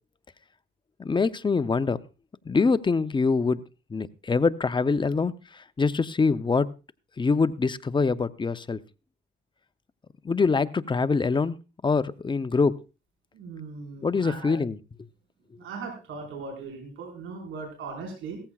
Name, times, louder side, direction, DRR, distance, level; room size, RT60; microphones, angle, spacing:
voice 1, 1.0-2.0 2.5-3.6 3.9-6.7 7.2-8.8 10.2-11.6 11.8-12.7 14.0-14.8, left 4 dB, 25° left, 13 dB, 0.7 m, -24 dB
voice 2, 13.3-14.6 15.6-18.4, right 4 dB, 80° right, 1 dB, 4.9 m, -39 dB
17.0 x 14.5 x 2.4 m, 0.30 s
cardioid pair, 90°, 20 cm